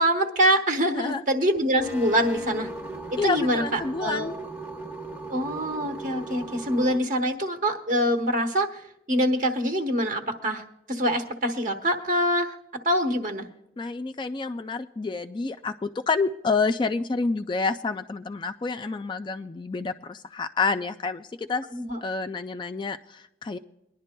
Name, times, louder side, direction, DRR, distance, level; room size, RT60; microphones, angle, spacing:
voice 1, 0.0-2.7 3.1-4.3 5.3-8.8 9.1-12.5 12.8-13.5 21.7-22.0, equal, 50° right, 5 dB, 1.2 m, -25 dB
sound 1, 1.8-7.0, right 1 dB, 10° right, 0.8 m, -37 dB
voice 2, 3.2-4.3 13.8-21.6 22.0-23.6, left 4 dB, 25° left, 9 dB, 0.3 m, -28 dB
23.0 x 11.0 x 2.2 m, 0.84 s
head